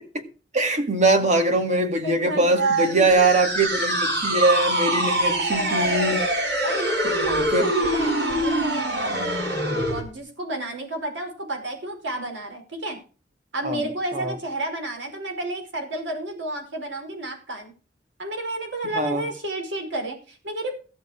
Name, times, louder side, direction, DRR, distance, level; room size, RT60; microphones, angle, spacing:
voice 1, 0.5-6.2 7.0-7.7 13.6-13.8 14.1-14.3 19.0-19.2, right 2 dB, 40° right, 2.2 m, -22 dB
voice 2, 2.0-3.3 5.1-6.2 6.6-9.3 9.7-13.0 13.5-17.7 18.2-20.7, right 2 dB, 85° right, 5.0 m, -31 dB
sound 1, 2.6-10.0, right 1 dB, 65° right, 5.8 m, -24 dB
16.0 x 7.0 x 6.2 m
head